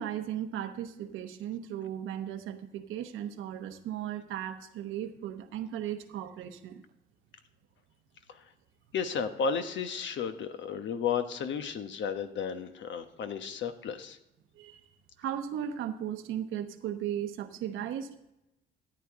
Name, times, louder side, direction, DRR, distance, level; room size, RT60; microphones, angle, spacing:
voice 1, 0.0-6.8 14.6-14.8 15.2-18.3, right 10 dB, 90° right, 7 dB, 1.0 m, -36 dB
voice 2, 8.9-14.2, left 6 dB, 70° left, 8 dB, 1.1 m, -33 dB
13.5 x 9.0 x 3.7 m, 0.88 s
cardioid pair, 90°, 20 cm